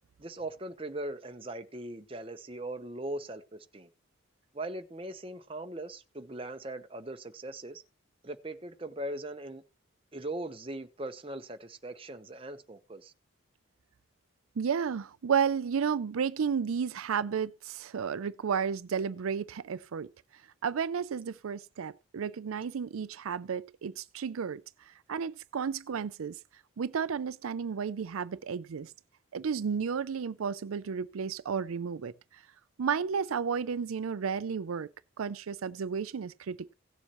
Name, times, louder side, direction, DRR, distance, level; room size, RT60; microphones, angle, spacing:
voice 1, 0.2-3.9 4.5-7.8 8.2-9.6 10.1-13.1, right 1 dB, 25° right, 0.9 m, -40 dB
voice 2, 14.6-20.1 20.6-24.6 24.9-26.4 26.8-28.9 29.3-32.1 32.8-34.9 35.2-36.7, right 6 dB, 85° right, 0.4 m, -32 dB
17.5 x 7.1 x 3.0 m
head